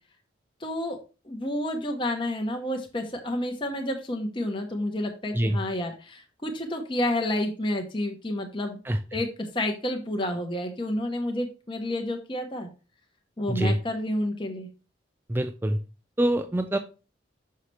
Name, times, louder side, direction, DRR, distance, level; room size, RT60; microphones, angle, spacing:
voice 1, 0.6-1.0 1.2-8.8 9.1-12.7 13.4-14.7, left 1 dB, 25° left, 3 dB, 0.9 m, -30 dB
voice 2, 13.5-13.8 15.3-15.8 16.2-16.8, right 1 dB, 10° right, 7 dB, 0.3 m, -25 dB
6.4 x 5.6 x 3.2 m, 0.33 s
head